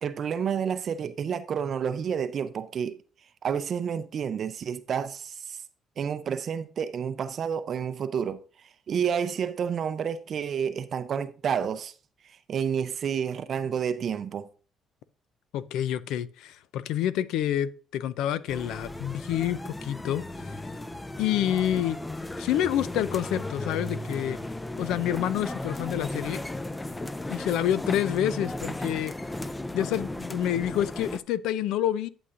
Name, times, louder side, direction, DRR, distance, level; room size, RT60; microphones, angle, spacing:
voice 1, 0.0-3.0 3.4-5.6 6.0-8.4 8.9-11.9 12.5-14.5, right 7 dB, 45° right, 0.5 m, -29 dB
voice 2, 15.5-20.2 21.2-22.0 22.4-24.4 24.8-26.4 27.3-29.1 29.7-32.1, left 11 dB, 80° left, 0.5 m, -28 dB
sound 1, 18.5-31.2, left 1 dB, 10° left, 0.5 m, -35 dB
11.0 x 7.8 x 2.5 m
cardioid pair, 120°, 0 cm